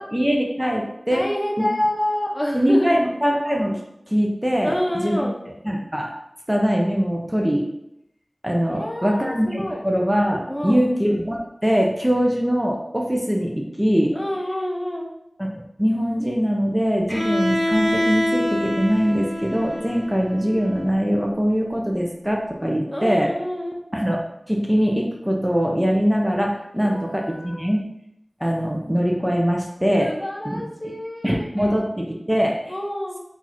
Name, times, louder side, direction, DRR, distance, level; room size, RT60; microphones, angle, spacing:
voice 1, 0.1-1.3 1.6-1.7 2.5-3.8 4.1-5.2 5.6-6.1 6.5-7.7 8.4-14.2 15.4-23.3 23.9-24.2 24.5-27.8 28.4-30.1 30.4-30.6 31.2-32.7, equal, 15° right, 0 dB, 0.5 m, -22 dB
voice 2, 1.1-3.0 4.6-5.4 8.7-9.8 10.5-10.8 14.1-15.1 22.9-23.8 26.7-27.5 30.0-31.7 32.7-33.2, left 1 dB, 25° left, 0 dB, 0.6 m, -27 dB
Bowed string instrument, 17.1-21.0, left 1 dB, 10° left, 1.3 m, -25 dB
2.9 x 2.4 x 4.0 m, 0.80 s
wide cardioid pair, 40°, 0 cm